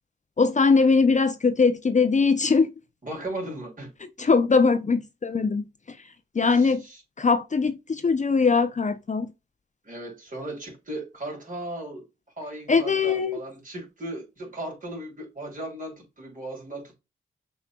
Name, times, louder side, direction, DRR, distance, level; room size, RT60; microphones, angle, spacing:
voice 1, 0.4-2.7 4.2-6.0 6.3-6.8 7.2-9.3 12.7-13.4, left 4 dB, 35° left, 0.6 m, -21 dB
voice 2, 3.0-3.9 6.5-7.0 9.8-12.0 12.4-17.0, right 1 dB, 40° right, 2.9 m, -36 dB
6.6 x 3.1 x 2.3 m
supercardioid pair, 45°, 21 cm